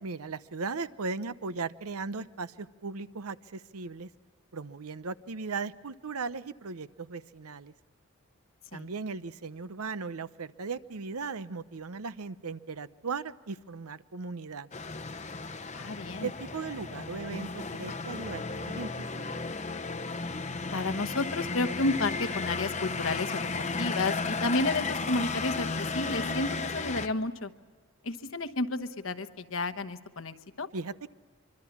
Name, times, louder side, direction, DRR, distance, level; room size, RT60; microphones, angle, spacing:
voice 1, 0.0-4.1 4.5-7.7 8.7-14.7 16.2-19.4 30.7-31.1, right 4 dB, 85° right, 14 dB, 0.8 m, -37 dB
sound 1, 14.7-27.1, left 3 dB, 30° left, 0.8 m, -34 dB
voice 2, 15.7-16.3 20.7-27.5 28.0-30.7, left 2 dB, 65° left, 10 dB, 1.1 m, -31 dB
24.5 x 24.0 x 7.2 m, 1.4 s
head